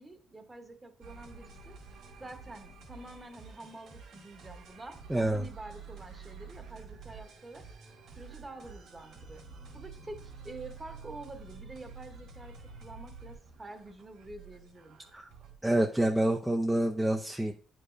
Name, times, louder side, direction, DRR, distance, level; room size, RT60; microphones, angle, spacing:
voice 1, 0.0-1.8 2.2-7.6 8.2-9.4 9.7-15.0, right 2 dB, 20° right, 6 dB, 1.1 m, -47 dB
sound 1, 1.0-15.6, right 5 dB, 75° right, 2.4 m, -49 dB
voice 2, 5.1-5.5 15.1-15.3 15.6-17.5, right 1 dB, 5° right, 1 dB, 0.6 m, -27 dB
9.8 x 4.9 x 2.6 m, 0.43 s
cardioid pair, 90°, 0 cm